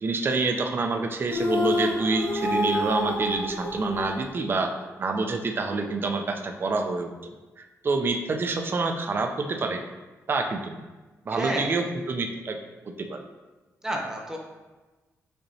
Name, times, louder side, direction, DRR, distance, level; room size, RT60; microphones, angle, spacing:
voice 1, 0.0-4.7 5.0-7.1 7.6-9.8 10.3-10.8 11.3-12.6 13.0-13.2, right 3 dB, 40° right, 5 dB, 0.4 m, -27 dB
sound 1, 1.3-4.7, left 2 dB, 80° left, 1.3 m, -28 dB
voice 2, 11.3-11.7 13.8-14.4, right 1 dB, 10° right, -1 dB, 0.8 m, -30 dB
6.5 x 3.0 x 2.7 m, 1.2 s
cardioid pair, 100°, 6 cm